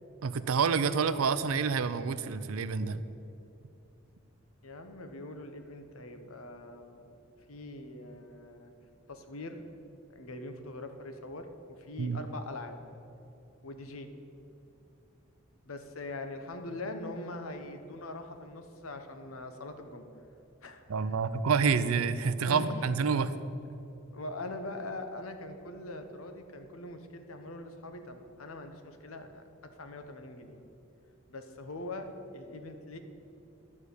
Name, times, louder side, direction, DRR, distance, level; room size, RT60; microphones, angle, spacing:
voice 1, 0.2-3.0 12.0-12.2 20.9-23.3, right 5 dB, 90° right, 13 dB, 0.5 m, -28 dB
voice 2, 4.6-7.1 7.5-8.7 9.1-9.6 10.1-12.8 13.6-14.1 15.7-20.1 20.6-21.2 22.3-23.3 24.1-30.6 31.3-33.0, left 2 dB, 85° left, 7 dB, 0.9 m, -42 dB
11.5 x 4.8 x 8.3 m, 2.7 s
head